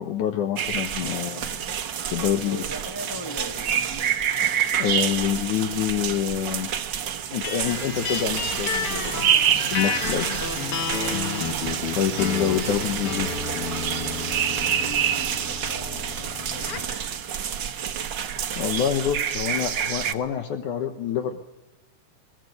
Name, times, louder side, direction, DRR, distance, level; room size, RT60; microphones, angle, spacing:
voice 1, 0.0-1.7 2.1-2.6 4.8-6.7 7.3-9.4 9.7-10.3 12.0-13.4 18.6-21.4, left 9 dB, 70° left, 7 dB, 2.5 m, -26 dB
sound 1, 0.6-20.1, right 9 dB, 75° right, 1.0 m, -28 dB
voice 2, 2.0-4.2 10.7-11.2 14.2-16.9, equal, 15° left, 1 dB, 0.7 m, -40 dB
sound 2, 7.4-17.0, left 6 dB, 50° left, 2.3 m, -32 dB
sound 3, 7.7-15.4, right 7 dB, 55° right, 2.5 m, -36 dB
21.5 x 20.0 x 8.0 m, 1.0 s
omnidirectional pair, 3.8 m